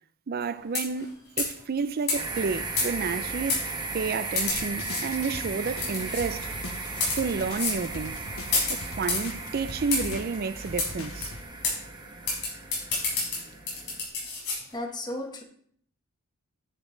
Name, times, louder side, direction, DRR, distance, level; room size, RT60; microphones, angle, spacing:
voice 1, 0.3-6.5 7.2-8.2 8.7-11.3, right 5 dB, 45° right, 0.4 m, -31 dB
sound 1, 0.7-1.0 1.4-1.6 2.1-2.2 2.8-3.1 3.5-3.6 4.4-5.0 5.8-6.2 6.9-7.2 7.6-7.8 8.5-9.3 9.9-10.1 10.8-10.9 11.2-11.3 11.6-11.8 12.3-14.6, left 3 dB, 50° left, 4.2 m, -28 dB
sound 2, 2.1-14.1, right 3 dB, 20° right, 1.2 m, -36 dB
sound 3, 4.5-11.4, left 2 dB, 65° left, 1.1 m, -42 dB
voice 2, 14.7-15.4, left 1 dB, 20° left, 1.1 m, -34 dB
10.0 x 7.3 x 3.9 m
head